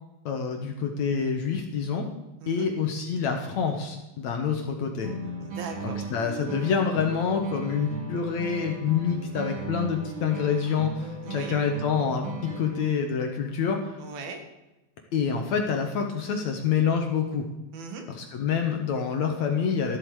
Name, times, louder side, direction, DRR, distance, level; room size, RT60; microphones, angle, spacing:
voice 1, 0.3-2.1 2.5-5.1 5.8-12.3 12.6-14.0 15.1-17.5 18.1-20.0, left 6 dB, 60° left, 3 dB, 2.2 m, -27 dB
voice 2, 2.4-2.7 5.4-6.1 11.2-11.6 14.0-14.4 17.7-18.1, right 5 dB, 80° right, 5 dB, 3.5 m, -39 dB
sound 1, 5.0-13.0, right 3 dB, 45° right, 3.4 m, -37 dB
14.5 x 12.0 x 4.8 m, 0.99 s
omnidirectional pair, 4.3 m